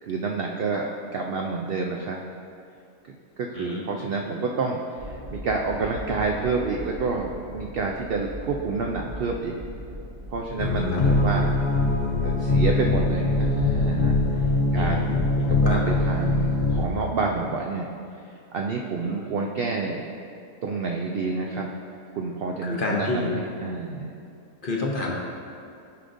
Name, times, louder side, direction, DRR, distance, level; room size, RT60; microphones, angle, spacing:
voice 1, 0.0-2.2 3.4-9.5 10.3-11.5 12.2-14.2 14.7-15.2 15.5-17.9 18.5-20.0 20.6-21.7 22.1-24.1, right 4 dB, 80° right, 1 dB, 0.5 m, -28 dB
voice 2, 3.5-4.0 10.9-11.3 14.7-15.8 19.0-19.1 22.6-23.3 24.6-25.1, left 3 dB, 45° left, -2 dB, 0.8 m, -30 dB
sound 1, 5.0-17.0, equal, 40° right, 1.1 m, -38 dB
sound 2, 10.6-16.9, left 2 dB, 65° left, 0.4 m, -22 dB
13.0 x 5.0 x 2.6 m, 2.5 s
omnidirectional pair, 1.6 m